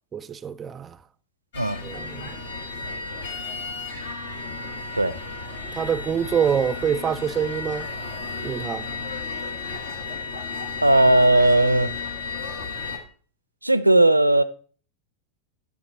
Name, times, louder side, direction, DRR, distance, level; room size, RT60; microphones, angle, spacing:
voice 1, 0.1-1.0 1.8-2.4 5.7-7.9 8.4-8.9, right 7 dB, 20° right, 0.4 m, -26 dB
sound 1, 1.5-13.0, left 4 dB, 65° left, 1.4 m, -33 dB
voice 2, 10.8-11.9 13.6-14.4, right 1 dB, 85° right, 0.4 m, -17 dB
9.5 x 7.2 x 4.1 m
figure-of-eight pair, 90°, 0 cm